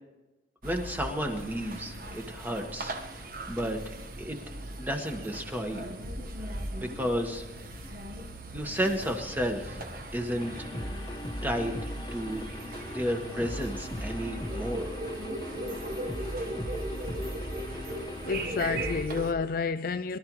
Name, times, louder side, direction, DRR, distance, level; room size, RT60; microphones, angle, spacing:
voice 1, 0.6-3.2 3.5-4.4 4.8-5.9 6.4-7.5 8.5-9.8 10.1-11.0 11.4-12.4 12.9-15.0, equal, 10° right, 1.5 m, -32 dB
sound 1, 0.6-19.3, right 1 dB, 50° right, 1.3 m, -39 dB
sound 2, 10.4-19.0, equal, 20° left, 1.2 m, -38 dB
voice 2, 18.3-20.2, left 5 dB, 50° left, 0.4 m, -30 dB
23.0 x 12.5 x 3.2 m
head